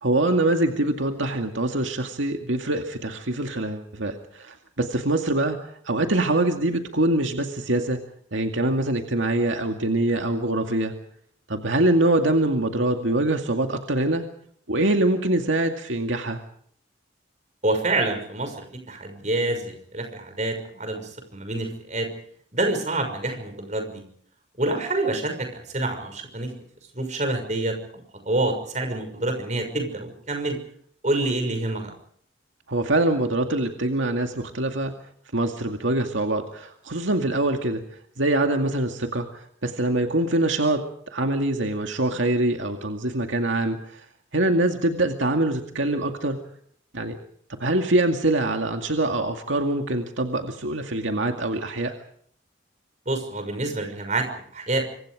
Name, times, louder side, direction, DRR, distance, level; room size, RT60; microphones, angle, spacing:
voice 1, 0.0-5.6 5.9-8.0 8.3-10.9 11.5-14.2 14.7-16.4 32.7-34.9 35.3-37.8 38.2-40.8 41.1-44.0 44.3-46.4 46.9-47.2 47.6-52.0, right 2 dB, 80° right, 4 dB, 2.2 m, -24 dB
voice 2, 17.6-22.1 22.5-24.0 24.6-26.5 26.9-27.7 28.3-30.6 31.0-31.9 53.1-54.3 54.5-54.8, right 2 dB, 40° right, 6 dB, 6.1 m, -27 dB
26.5 x 24.5 x 5.0 m, 0.63 s
head